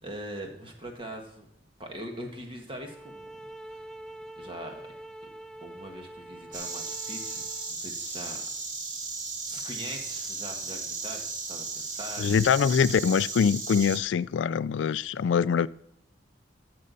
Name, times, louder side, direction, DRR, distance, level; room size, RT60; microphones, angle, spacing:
voice 1, 0.0-1.5 1.8-3.3 3.6-3.8 4.4-4.9 5.6-8.4 9.5-12.4, right 1 dB, 30° right, 1.6 m, -41 dB
sound 1, 2.8-7.8, right 1 dB, 5° left, 0.3 m, -45 dB
Insect, 6.5-14.0, right 3 dB, 45° right, 1.7 m, -35 dB
voice 2, 12.2-15.7, left 7 dB, 85° left, 0.3 m, -24 dB
13.5 x 6.7 x 4.0 m
head